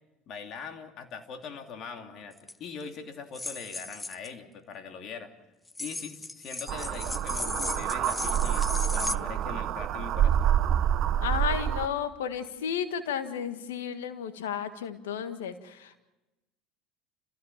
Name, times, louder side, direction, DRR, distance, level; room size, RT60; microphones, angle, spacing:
voice 1, 0.3-5.3 5.8-10.6, left 5 dB, 55° left, 5 dB, 2.9 m, -42 dB
sound 1, 2.4-2.5 3.3-4.3 5.7-9.2, left 2 dB, 15° left, 0.7 m, -36 dB
sound 2, 6.7-11.9, right 10 dB, 55° right, 1.1 m, -27 dB
voice 2, 11.2-16.0, left 8 dB, 85° left, 9 dB, 1.7 m, -33 dB
28.0 x 16.0 x 7.4 m, 1.0 s
hypercardioid pair, 80°, 0 cm